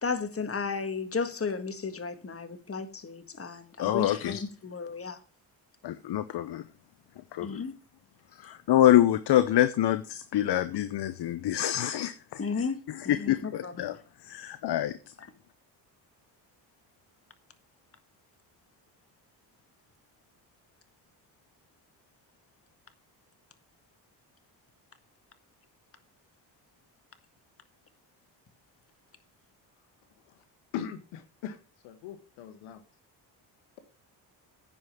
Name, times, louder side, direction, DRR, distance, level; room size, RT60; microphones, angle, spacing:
voice 1, 0.0-5.2 7.4-7.7 8.4-8.5 12.4-12.8 13.0-13.7 15.2-15.3, left 5 dB, 30° left, 1.7 m, -34 dB
voice 2, 3.8-4.4 5.8-6.6 7.3-7.6 8.4-12.4 13.1-13.9 14.3-14.9, left 12 dB, 55° left, 0.8 m, -26 dB
voice 3, 30.7-31.6 31.8-32.8, left 9 dB, 80° left, 1.4 m, -39 dB
9.6 x 5.4 x 7.5 m
supercardioid pair, 60°, 48 cm